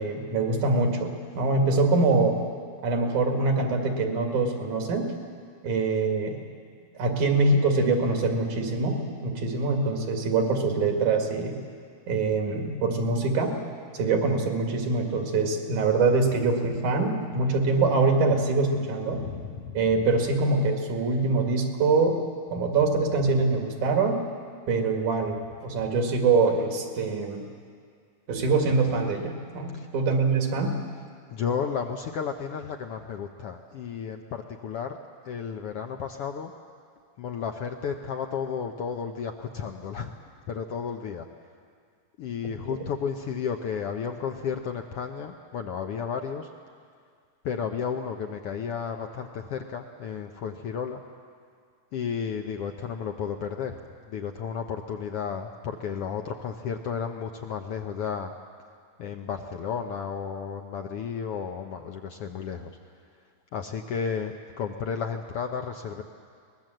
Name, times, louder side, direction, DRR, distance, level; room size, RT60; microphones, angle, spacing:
voice 1, 0.0-2.4 2.8-5.1 5.6-6.4 7.0-11.6 12.1-13.6 13.9-19.2 19.7-22.2 22.5-24.2 24.7-27.4 28.3-30.7 42.7-42.8, right 3 dB, 80° right, 3 dB, 3.5 m, -24 dB
voice 2, 19.1-19.8 29.7-29.9 31.3-35.0 35.2-36.5 37.2-40.1 40.5-41.3 42.2-46.5 47.4-51.0 51.9-53.8 54.1-58.3 59.0-62.7 63.5-66.0, left 6 dB, 70° left, 4 dB, 1.4 m, -33 dB
23.0 x 20.0 x 7.8 m, 2.1 s
omnidirectional pair, 3.5 m